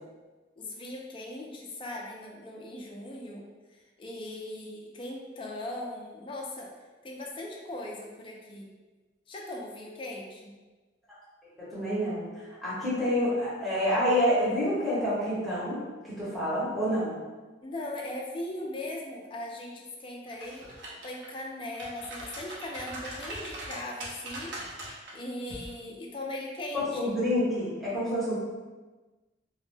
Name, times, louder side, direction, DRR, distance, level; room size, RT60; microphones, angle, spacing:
voice 1, 0.6-3.5 4.0-6.7 7.0-8.7 9.3-10.5 17.6-20.7 21.0-24.5 25.1-27.1, left 1 dB, 30° left, -1 dB, 0.3 m, -39 dB
voice 2, 11.6-17.2 26.9-28.4, equal, ahead, -11 dB, 1.0 m, -28 dB
sound 1, 20.3-21.3 21.7-25.1 25.5-25.7, right 1 dB, 70° right, 0.6 m, -40 dB
2.1 x 2.0 x 3.2 m, 1.2 s
head